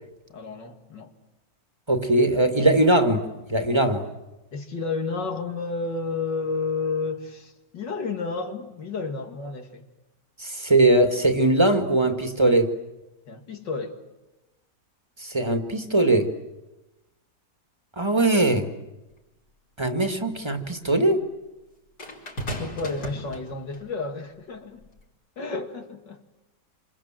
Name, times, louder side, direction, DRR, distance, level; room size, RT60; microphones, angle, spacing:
voice 1, 0.3-1.1 4.5-9.8 13.3-14.0 22.6-24.8 25.4-26.2, left 4 dB, 85° left, 2.9 m, -31 dB
voice 2, 1.9-4.0 10.4-12.7 15.2-16.3 18.0-18.7 19.8-21.2, right 2 dB, 15° right, 2.0 m, -21 dB
sound 1, 19.1-19.2 22.0-23.9 24.8-25.0, equal, 65° left, 4.9 m, -35 dB
27.5 x 27.0 x 7.6 m
omnidirectional pair, 1.9 m